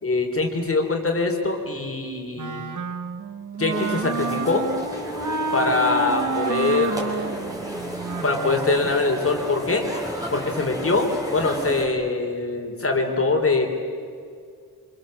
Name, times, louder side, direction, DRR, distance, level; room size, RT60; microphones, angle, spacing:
voice 1, 0.0-2.6 3.6-4.7 5.5-7.3 8.2-9.9 10.3-13.7, left 3 dB, 35° left, 3 dB, 3.8 m, -23 dB
Wind instrument woodwind instrument, 2.4-8.9, right 4 dB, 50° right, 1.6 m, -29 dB
sound 1, 3.7-11.9, equal, 10° right, 5.0 m, -33 dB
28.0 x 27.0 x 7.8 m, 2.3 s
wide cardioid pair, 165°, 37 cm